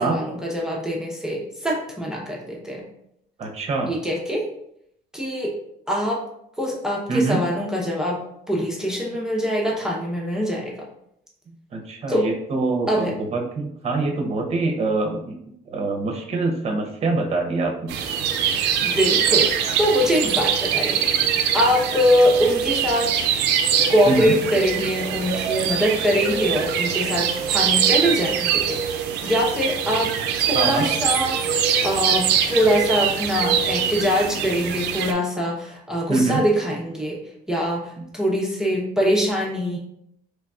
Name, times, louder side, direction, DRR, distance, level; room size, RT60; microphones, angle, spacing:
voice 1, 0.0-2.8 3.9-4.4 5.1-5.5 5.9-6.2 6.6-10.9 12.1-12.3 12.9-13.1 18.8-19.5 19.8-23.3 23.9-30.1 30.4-31.6 31.8-37.2 37.5-39.8, equal, 5° right, -3 dB, 0.8 m, -23 dB
voice 2, 3.4-3.9 7.1-7.4 11.5-15.3 15.7-18.0 24.1-24.3 30.5-30.9 36.1-36.4 38.0-38.1, right 3 dB, 40° right, 2 dB, 0.8 m, -24 dB
sound 1, 17.9-35.1, right 8 dB, 80° right, 0.5 m, -23 dB
3.9 x 3.3 x 2.3 m, 0.74 s
cardioid pair, 110°, 17 cm